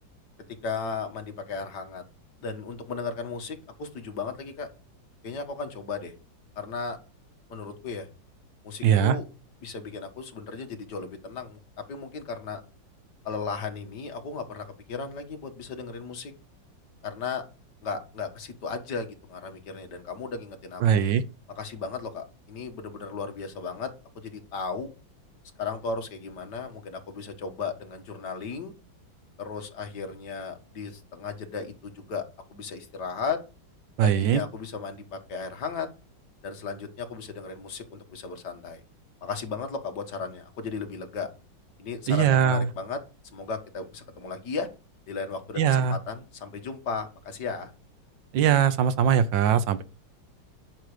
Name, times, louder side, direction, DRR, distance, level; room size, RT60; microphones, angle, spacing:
voice 1, 0.6-2.0 2.4-4.7 5.2-6.1 6.6-7.0 7.5-8.1 8.6-9.2 9.6-12.6 13.3-16.3 17.0-17.4 17.8-21.0 21.6-23.9 24.2-24.9 25.6-28.7 29.4-32.3 32.5-33.4 34.0-35.9 36.4-38.8 39.2-41.3 41.8-43.0 43.3-44.7 45.1-47.7, left 5 dB, 60° left, 2.1 m, -35 dB
voice 2, 8.8-9.2 20.8-21.2 34.0-34.4 42.1-42.7 45.6-46.0 48.3-49.8, right 8 dB, 75° right, 1.5 m, -21 dB
10.5 x 5.9 x 5.0 m
omnidirectional pair, 2.1 m